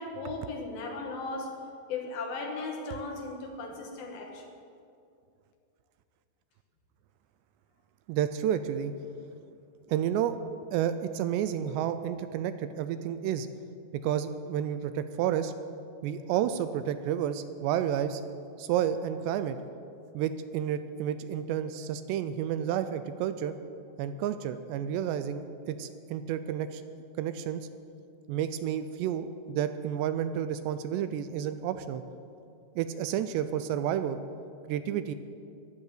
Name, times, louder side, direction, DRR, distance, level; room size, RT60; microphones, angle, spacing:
voice 1, 0.0-1.6 1.9-4.5, left 3 dB, 65° left, 2 dB, 2.6 m, -37 dB
voice 2, 8.1-8.9 9.9-10.4 10.7-13.5 14.0-15.5 16.0-18.2 18.6-19.6 20.1-23.5 24.0-26.8 27.2-27.7 28.3-32.0 32.8-34.2 34.7-35.1, right 10 dB, 85° right, 11 dB, 2.6 m, -30 dB
16.0 x 11.0 x 6.7 m, 2.5 s
omnidirectional pair, 5.1 m